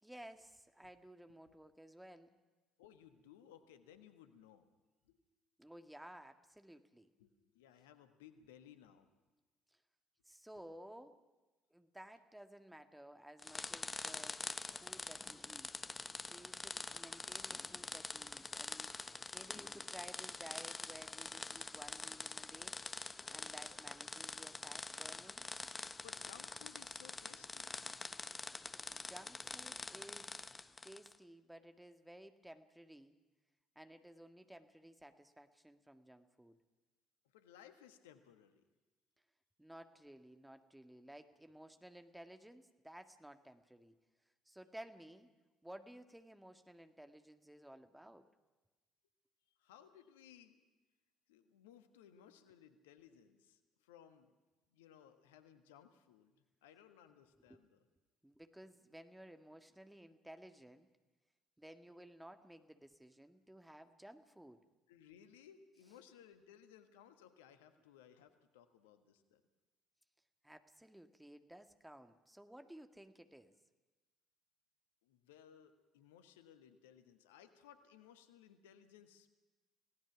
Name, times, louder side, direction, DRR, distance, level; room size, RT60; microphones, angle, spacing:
voice 1, 0.0-2.3 5.6-7.1 10.2-11.2 11.7-14.4 14.7-15.7 16.2-22.8 23.3-25.4 28.9-30.5 30.8-33.2 33.8-36.6 39.6-43.9 44.5-45.3 45.6-48.3 57.1-57.2 57.5-57.6 58.2-60.9 61.6-64.6 70.4-73.5, right 1 dB, 5° right, 7 dB, 1.8 m, -56 dB
voice 2, 2.8-4.7 5.1-5.2 7.2-9.1 26.0-27.8 37.3-38.6 49.6-50.7 51.3-54.3 54.7-56.4 56.6-57.8 64.9-69.4 75.0-79.3, left 9 dB, 75° left, 9 dB, 1.4 m, -61 dB
sound 1, 13.4-31.2, left 3 dB, 25° left, 1.0 m, -46 dB
30.0 x 17.5 x 6.0 m, 1.2 s
figure-of-eight pair, 50°, 0 cm